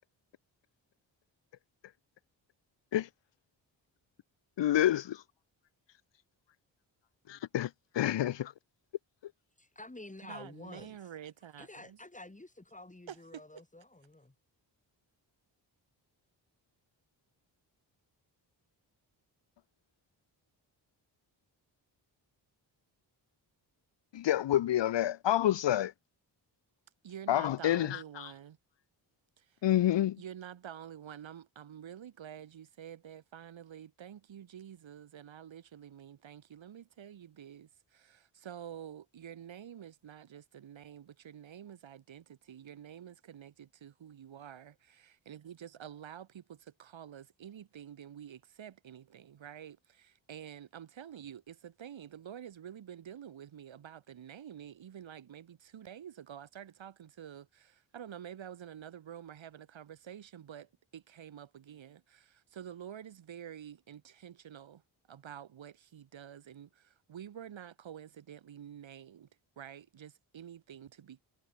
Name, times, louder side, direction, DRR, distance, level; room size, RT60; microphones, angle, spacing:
voice 1, 4.6-5.2 7.3-7.7 7.9-8.5 24.1-25.9 27.3-28.3 29.6-30.2, left 12 dB, 65° left, 0.8 m, -28 dB
voice 2, 9.6-11.0 11.6-14.3, left 2 dB, 15° left, 3.6 m, -49 dB
voice 3, 10.2-12.0 13.1-13.4 27.0-28.6 29.4-29.6 30.2-64.8 65.1-69.3 69.6-71.2, right 9 dB, 75° right, 2.7 m, -49 dB
cardioid pair, 50°, 46 cm